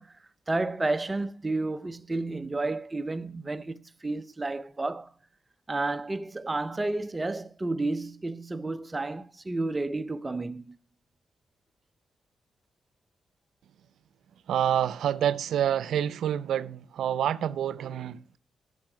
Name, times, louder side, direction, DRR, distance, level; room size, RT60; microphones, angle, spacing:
voice 1, 0.0-5.1 5.7-10.8, right 2 dB, 20° right, 0.6 m, -31 dB
voice 2, 14.5-18.4, right 10 dB, 85° right, 0.5 m, -27 dB
13.5 x 5.8 x 6.0 m
cardioid pair, 115°, 0 cm